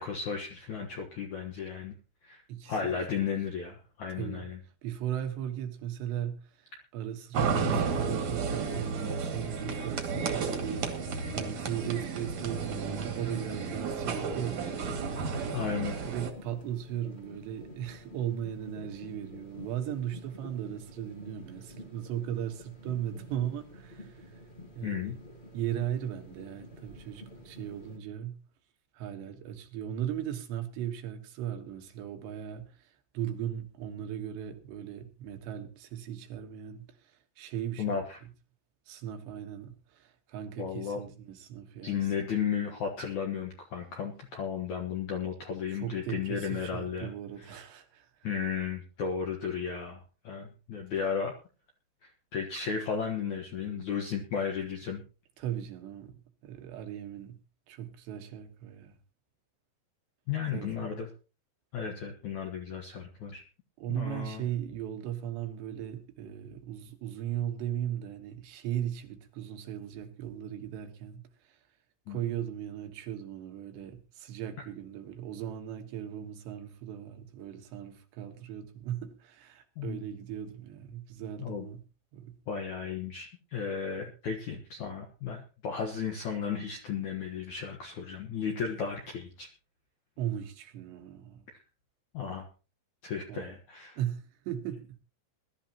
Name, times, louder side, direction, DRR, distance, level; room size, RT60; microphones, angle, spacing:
voice 1, 0.0-1.9 2.2-4.6 15.5-16.0 24.8-25.2 37.8-38.2 40.6-41.0 41.8-47.1 47.4-47.6 48.2-51.3 52.0-55.0 60.3-61.1 61.7-63.4 63.9-64.5 72.1-72.2 79.8-80.0 81.4-81.7 82.5-89.5 92.1-92.5 93.0-94.0, left 6 dB, 65° left, 1.9 m, -34 dB
voice 2, 2.5-3.1 4.1-4.5 4.8-15.6 16.1-24.4 24.8-25.2 25.5-28.4 28.9-38.0 38.9-42.3 45.7-48.3 55.4-56.2 56.4-57.4 57.7-59.0 60.5-60.9 63.8-71.6 72.1-81.8 82.1-82.4 90.2-91.5 93.3-93.6 94.0-95.0, right 10 dB, 70° right, 3.4 m, -37 dB
sound 1, 7.3-16.3, right 5 dB, 45° right, 2.6 m, -32 dB
sound 2, 8.2-28.0, left 1 dB, 25° left, 1.1 m, -49 dB
21.5 x 12.5 x 2.9 m
omnidirectional pair, 5.4 m